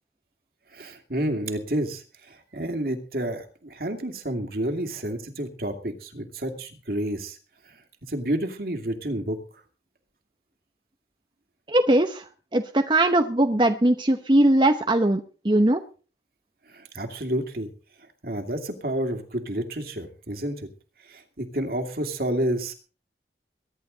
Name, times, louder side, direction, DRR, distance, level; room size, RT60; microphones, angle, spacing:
voice 1, 0.7-2.0 2.3-7.4 8.1-9.4 16.7-17.7 18.2-20.6 21.1-22.7, right 1 dB, 55° right, 6 dB, 2.5 m, -29 dB
voice 2, 11.7-12.2 12.5-15.8, right 1 dB, 25° right, 6 dB, 0.9 m, -20 dB
22.5 x 11.0 x 4.0 m, 0.38 s
head